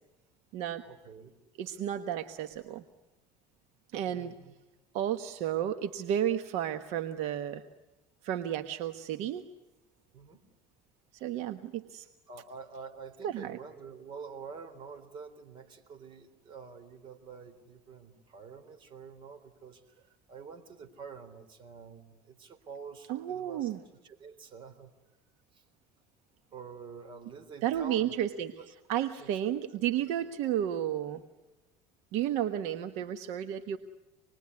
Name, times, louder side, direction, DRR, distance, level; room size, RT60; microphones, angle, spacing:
voice 1, 0.8-1.3 4.0-4.5 10.1-10.4 12.3-20.0 20.3-23.7 24.0-24.9 25.5-25.6 26.5-28.7 29.1-29.6, right 5 dB, 45° right, 6 dB, 3.8 m, -47 dB
voice 2, 1.6-2.8 3.9-4.3 4.9-7.6 8.2-9.4 11.2-12.1 13.2-13.6 23.1-23.8 27.6-28.5 28.9-31.2 32.1-33.8, right 10 dB, 70° right, 9 dB, 1.3 m, -32 dB
27.0 x 21.0 x 9.7 m, 1.1 s
cardioid pair, 120°, 12 cm